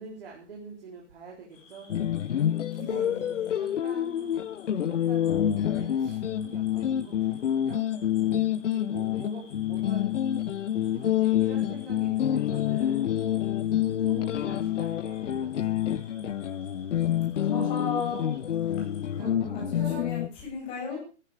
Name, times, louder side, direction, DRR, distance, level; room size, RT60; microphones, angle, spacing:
voice 1, 0.0-1.9 2.5-3.3 3.5-4.4 4.7-7.8 8.7-10.1 10.7-13.1 14.0-16.0 19.2-20.2 20.8-21.0, right 4 dB, 55° right, -2 dB, 4.2 m, -46 dB
sound 1, 1.5-19.2, left 4 dB, 30° left, 5.4 m, -55 dB
sound 2, 1.9-20.3, left 10 dB, 90° left, 0.8 m, -27 dB
voice 2, 2.7-3.5 17.4-18.4 19.2-21.0, left 6 dB, 15° left, -2 dB, 6.3 m, -35 dB
14.5 x 12.5 x 4.9 m, 0.36 s
hypercardioid pair, 170°, 35 cm